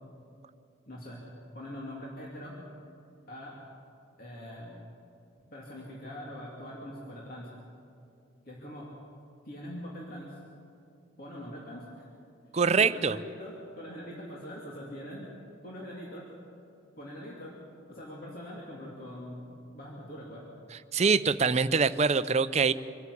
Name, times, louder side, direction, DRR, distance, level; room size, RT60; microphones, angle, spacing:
voice 1, 0.9-1.2 1.5-2.6 3.3-3.6 4.2-4.8 5.5-7.5 8.5-8.9 9.4-10.4 11.2-12.1 12.8-15.3 15.6-16.3 17.0-17.6 17.9-19.5 19.7-20.5, equal, 45° left, -4 dB, 2.8 m, -43 dB
voice 2, 12.5-13.2 20.9-22.7, right 5 dB, 35° right, 13 dB, 0.5 m, -24 dB
25.5 x 13.0 x 8.5 m, 2.6 s
head